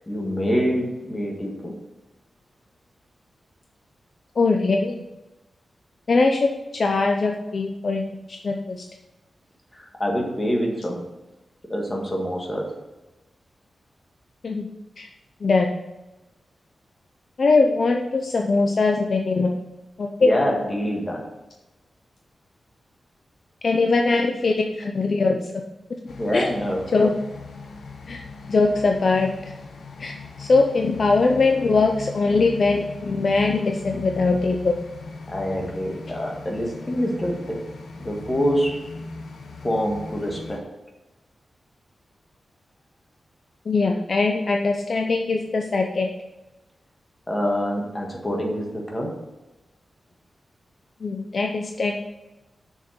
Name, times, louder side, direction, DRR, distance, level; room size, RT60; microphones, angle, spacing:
voice 1, 0.1-1.7 9.7-11.0 11.7-12.7 20.2-21.2 26.2-27.0 35.3-37.6 38.0-38.8 39.6-40.6 47.3-49.1, equal, 15° left, 0 dB, 1.8 m, -25 dB
voice 2, 4.4-5.0 6.1-8.8 14.4-14.7 15.0-15.1 15.4-15.7 17.4-19.6 20.0-20.4 23.6-25.5 26.3-26.4 26.9-27.1 28.1-28.2 28.5-29.3 30.0-30.1 30.4-34.7 43.7-46.1 51.0-52.0, left 3 dB, 45° left, 2 dB, 0.6 m, -21 dB
sound 1, 26.1-40.6, left 4 dB, 75° left, 1.1 m, -39 dB
6.6 x 6.4 x 7.2 m, 1.0 s
wide cardioid pair, 175°, 0 cm